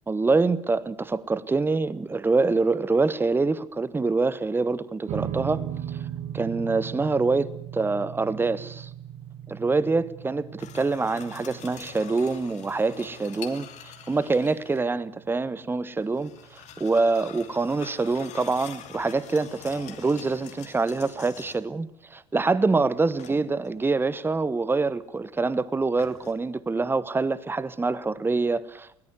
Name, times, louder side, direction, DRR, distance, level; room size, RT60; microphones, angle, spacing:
voice 1, 0.1-5.6 5.9-6.0 6.3-8.9 9.5-29.0, right 3 dB, 15° right, 1.1 m, -25 dB
sound 1, 5.1-17.6, right 10 dB, 45° right, 1.2 m, -39 dB
sound 2, 10.6-14.8 16.0-21.8 23.2-23.8 26.0-26.3, left 10 dB, 50° left, 2.8 m, -45 dB
21.0 x 19.0 x 9.6 m
figure-of-eight pair, 60°, 15 cm